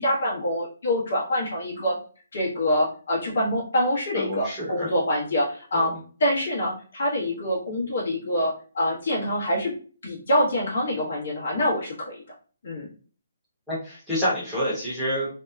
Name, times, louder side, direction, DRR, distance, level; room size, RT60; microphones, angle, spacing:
voice 1, 0.0-2.0 2.3-5.9 6.2-9.7 10.0-12.2 12.6-12.9, left 1 dB, 60° left, -3 dB, 1.0 m, -25 dB
voice 2, 4.1-4.9 5.7-6.0 13.7-15.3, equal, ahead, -12 dB, 0.9 m, -28 dB
2.7 x 2.2 x 2.3 m, 0.39 s
hypercardioid pair, 175°, 0 cm